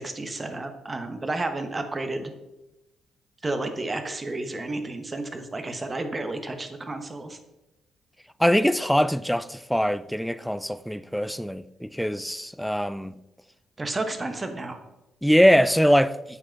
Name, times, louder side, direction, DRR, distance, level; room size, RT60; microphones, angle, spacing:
voice 1, 0.0-2.3 3.4-7.4 13.8-14.8, right 2 dB, 25° right, 1.1 m, -31 dB
voice 2, 8.4-13.1 15.2-16.1, equal, ahead, 0.3 m, -22 dB
8.3 x 5.0 x 4.5 m
cardioid pair, 90°, 0 cm